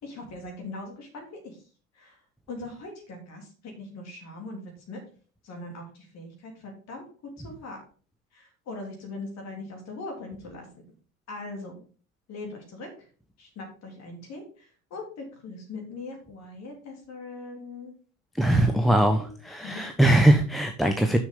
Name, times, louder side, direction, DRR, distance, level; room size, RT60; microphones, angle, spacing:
voice 1, 0.0-1.6 1.9-2.2 2.5-5.0 5.4-7.1 7.4-7.8 8.3-10.7 11.3-11.8 12.3-13.1 13.4-17.9 18.6-19.8, left 2 dB, 35° left, 2 dB, 3.5 m, -41 dB
voice 2, 18.4-21.2, right 1 dB, ahead, 6 dB, 0.3 m, -21 dB
7.1 x 6.2 x 5.4 m, 0.39 s
figure-of-eight pair, 80°, 43 cm